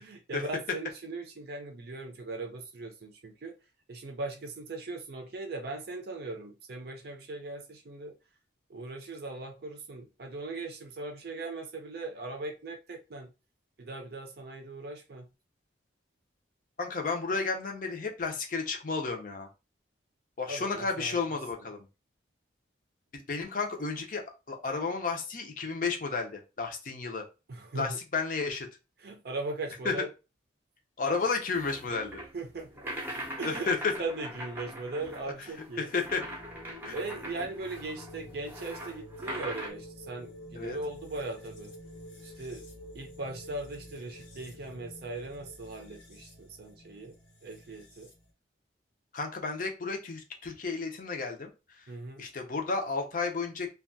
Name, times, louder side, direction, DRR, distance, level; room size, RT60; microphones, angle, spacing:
voice 1, 0.0-3.6 3.9-8.1 8.7-13.3 13.8-15.3 20.5-21.2 21.6-21.7 27.5-28.0 29.0-30.1 32.3-32.8 33.4-33.7 34.0-35.9 36.9-41.7 42.2-42.6 42.9-47.2 47.4-48.1 51.9-52.3, right 2 dB, 55° right, 0.5 m, -39 dB
voice 2, 16.8-19.5 20.4-21.9 23.1-27.2 27.7-28.7 29.8-29.9 31.0-32.2 33.4-33.9 35.8-36.2 36.8-36.9 40.5-40.8 49.1-51.5 52.2-53.7, left 4 dB, 45° left, 0.5 m, -32 dB
sound 1, 31.5-39.7, right 1 dB, 10° right, 0.6 m, -42 dB
sound 2, 36.0-48.3, left 1 dB, 85° left, 1.1 m, -49 dB
2.7 x 2.3 x 2.5 m
head